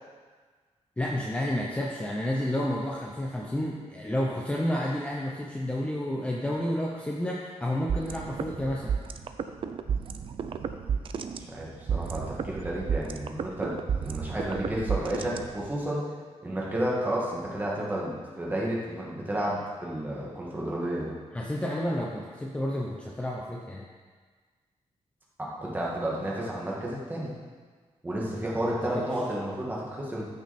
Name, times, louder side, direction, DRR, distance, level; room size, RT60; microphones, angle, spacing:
voice 1, 1.0-9.0 21.3-23.9 28.3-28.4 28.6-29.0, left 1 dB, 10° left, -2 dB, 0.8 m, -30 dB
sound 1, 7.9-15.9, right 7 dB, 50° right, 0.5 m, -32 dB
voice 2, 11.4-16.1 16.4-21.1 25.4-27.3 28.0-30.3, right 1 dB, 15° right, -5 dB, 2.0 m, -31 dB
14.0 x 6.5 x 4.3 m, 1.5 s
wide cardioid pair, 170°, 12 cm